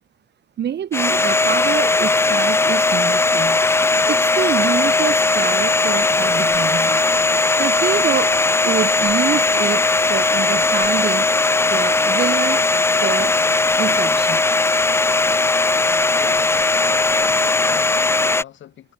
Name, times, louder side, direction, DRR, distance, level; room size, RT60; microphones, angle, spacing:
voice 1, 0.6-3.6 4.1-7.1 7.6-8.4 8.6-9.8 10.1-11.3 11.7-12.6 13.0-13.4 13.8-14.4, right 9 dB, 60° right, 2.7 m, -26 dB
Domestic sounds home sounds, 0.9-18.4, left 3 dB, 15° left, 0.4 m, -18 dB
voice 2, 16.1-18.9, left 11 dB, 70° left, 3.8 m, -41 dB
cardioid pair, 90°, 20 cm